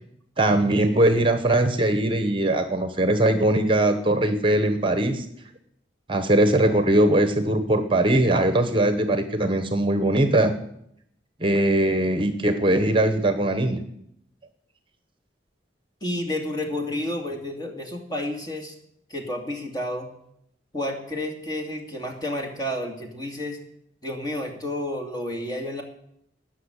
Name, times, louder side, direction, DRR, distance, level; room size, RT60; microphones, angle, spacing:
voice 1, 0.4-5.2 6.1-10.5 11.4-13.8, right 1 dB, 30° right, 9 dB, 1.1 m, -21 dB
voice 2, 16.0-18.7 19.1-20.1 20.7-23.6 24.0-25.8, left 1 dB, 25° left, 2 dB, 2.5 m, -30 dB
19.5 x 6.5 x 8.2 m, 0.74 s
head